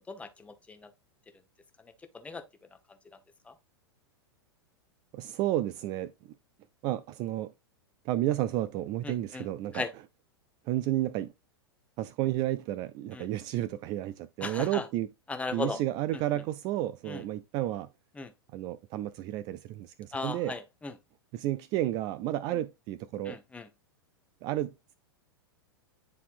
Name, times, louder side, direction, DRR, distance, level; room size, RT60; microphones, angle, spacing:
voice 1, 0.1-0.9 2.1-2.4 3.5-3.6 9.0-9.5 9.7-9.9 13.1-13.3 14.4-14.9 15.3-15.8 16.1-16.2 17.1-17.2 18.2-18.3 20.1-20.9 23.3-23.7, left 4 dB, 10° left, 0.9 m, -37 dB
voice 2, 5.1-6.1 6.8-7.5 8.0-9.8 10.7-11.3 12.0-15.1 15.5-17.9 18.5-20.6 21.3-23.4 24.4-24.9, right 14 dB, 30° right, 0.4 m, -31 dB
9.7 x 4.1 x 2.4 m
figure-of-eight pair, 95°, 13 cm